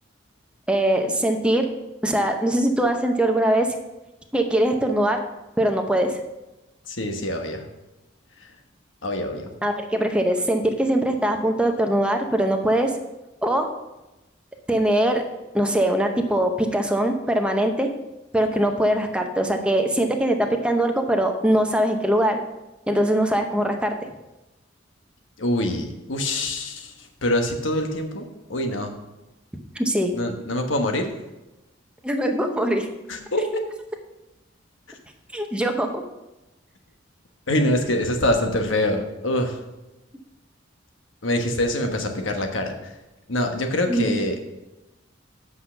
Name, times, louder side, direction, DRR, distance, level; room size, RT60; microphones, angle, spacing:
voice 1, 0.7-1.7 2.0-3.7 4.3-5.2 5.6-6.2 9.6-12.9 13.4-13.7 14.7-15.2 15.5-17.9 18.3-20.4 20.6-22.4 22.9-23.9 29.8-30.1 32.0-32.9 35.3-36.0 43.9-44.1, right 1 dB, 5° right, 4 dB, 0.7 m, -22 dB
voice 2, 6.9-7.6 8.4-8.5 9.0-9.5 25.4-28.9 30.1-31.1 33.1-33.6 37.5-39.6 41.2-43.0 43.3-44.4, left 1 dB, 80° left, 4 dB, 1.2 m, -25 dB
8.3 x 5.5 x 5.8 m, 1.0 s
head